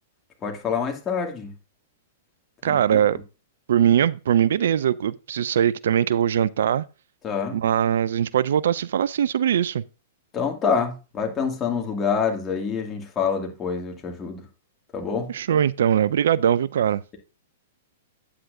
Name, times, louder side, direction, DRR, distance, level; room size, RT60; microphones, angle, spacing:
voice 1, 0.4-1.5 2.7-3.0 7.2-7.6 10.3-14.5 14.9-15.3, left 6 dB, 25° left, 2.2 m, -26 dB
voice 2, 2.6-3.2 3.7-6.8 7.5-9.8 15.3-17.0, right 9 dB, 70° right, 0.3 m, -21 dB
9.1 x 8.6 x 2.6 m
hypercardioid pair, 110°, 0 cm